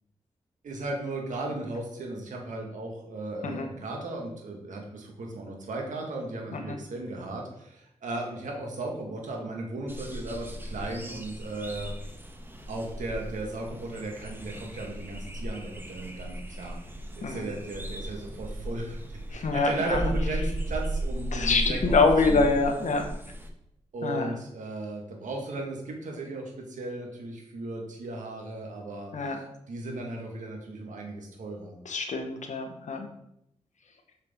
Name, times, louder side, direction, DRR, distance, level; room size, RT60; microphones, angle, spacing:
voice 1, 0.6-11.9 12.7-16.8 17.2-19.0 19.3-22.5 23.9-29.1 29.7-31.8, right 2 dB, 80° right, 1 dB, 1.7 m, -36 dB
sound 1, 9.9-23.5, right 1 dB, 15° right, 1.2 m, -35 dB
voice 2, 19.3-20.0 21.3-23.1 24.0-24.4 29.1-29.4 31.8-33.1, left 3 dB, 75° left, 5 dB, 1.1 m, -25 dB
6.4 x 5.8 x 3.6 m, 0.76 s
cardioid pair, 45°, 13 cm